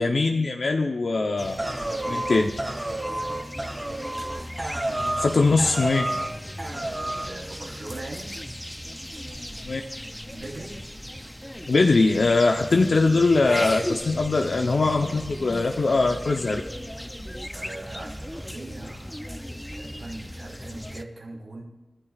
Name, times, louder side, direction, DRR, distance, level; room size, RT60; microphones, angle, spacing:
voice 1, 0.0-1.6 2.1-2.5 5.2-6.1 9.6-9.8 11.7-16.6, left 3 dB, 65° left, 2 dB, 0.8 m, -21 dB
sound 1, 1.4-21.0, equal, 5° left, 0.6 m, -37 dB
sound 2, 1.6-5.3 5.6-6.3 6.6-7.3, right 1 dB, 30° right, 2.6 m, -30 dB
voice 2, 6.7-8.3 10.3-10.8 17.5-21.6, right 2 dB, 85° right, -3 dB, 3.7 m, -41 dB
29.5 x 12.0 x 2.5 m, 1.1 s
wide cardioid pair, 80°, 0 cm